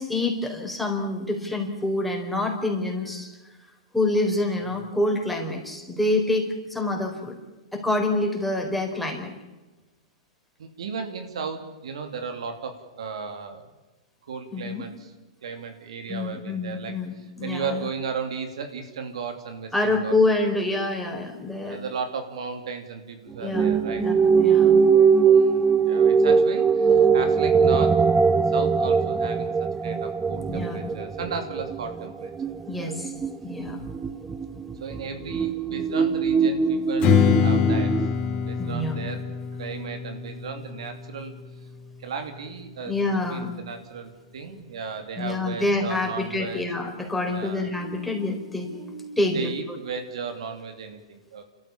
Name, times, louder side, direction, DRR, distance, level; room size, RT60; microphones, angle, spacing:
voice 1, 0.0-3.3 3.9-7.4 7.7-9.3 14.5-14.9 16.1-17.9 19.7-21.8 23.4-24.8 30.5-30.8 32.6-33.1 33.4-33.8 38.6-39.1 42.8-43.5 45.2-49.8, left 2 dB, ahead, 1 dB, 4.4 m, -27 dB
voice 2, 10.6-13.7 14.2-15.1 15.4-20.2 21.6-24.1 25.2-28.0 28.5-29.5 29.8-32.3 32.8-32.9 34.8-37.9 38.4-39.2 39.6-41.3 42.0-42.9 43.3-46.6 47.3-47.7 49.3-51.4, right 5 dB, 75° right, 6 dB, 2.7 m, -35 dB
sound 1, 23.5-38.1, right 6 dB, 15° right, 0.8 m, -21 dB
Strum, 37.0-42.2, left 8 dB, 40° left, 4.4 m, -25 dB
29.5 x 14.0 x 7.2 m, 1.1 s
hypercardioid pair, 120°, 3 cm